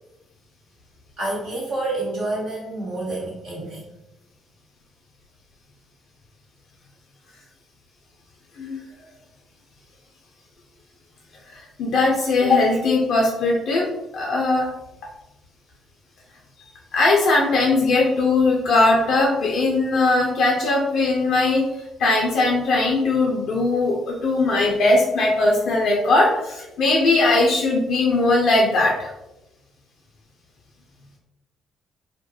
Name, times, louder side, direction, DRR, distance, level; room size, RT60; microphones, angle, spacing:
voice 1, 1.2-3.9, right 2 dB, 70° right, -7 dB, 1.2 m, -28 dB
voice 2, 11.5-14.7 16.9-21.6 22.0-29.1, left 2 dB, 60° left, -2 dB, 0.4 m, -19 dB
2.3 x 2.0 x 2.8 m, 0.95 s
figure-of-eight pair, 45°, 0 cm